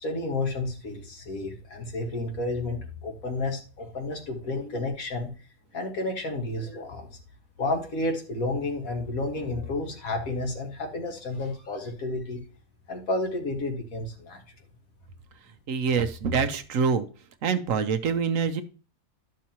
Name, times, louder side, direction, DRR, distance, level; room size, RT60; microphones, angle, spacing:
voice 1, 0.0-5.3 5.7-7.1 7.6-12.4 12.9-14.4, left 2 dB, 80° left, 2 dB, 2.1 m, -31 dB
voice 2, 15.7-17.1 17.4-18.6, right 6 dB, 70° right, 10 dB, 1.1 m, -25 dB
12.5 x 6.4 x 2.9 m, 0.37 s
omnidirectional pair, 1.5 m